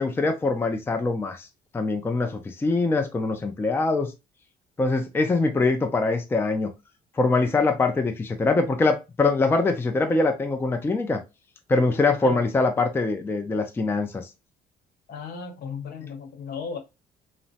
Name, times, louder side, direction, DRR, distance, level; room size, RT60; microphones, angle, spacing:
voice 1, 0.0-1.5 1.7-4.1 4.8-6.7 7.2-11.2 11.7-14.3, left 3 dB, 15° left, 0.4 m, -23 dB
voice 2, 12.0-12.4 15.1-16.8, left 6 dB, 65° left, 0.9 m, -35 dB
3.0 x 2.0 x 2.7 m
cardioid pair, 110°, 17 cm